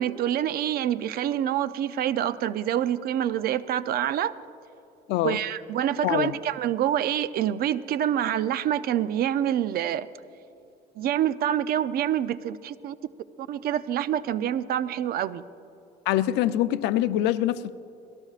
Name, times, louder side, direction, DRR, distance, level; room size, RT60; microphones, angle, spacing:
voice 1, 0.0-4.3 5.2-10.1 11.0-12.9 13.4-15.4, right 10 dB, 65° right, 15 dB, 0.5 m, -26 dB
voice 2, 5.1-5.4 6.0-6.3 16.1-17.7, left 13 dB, 90° left, 12 dB, 0.5 m, -24 dB
26.0 x 17.5 x 2.5 m, 2.9 s
cardioid pair, 110°, 17 cm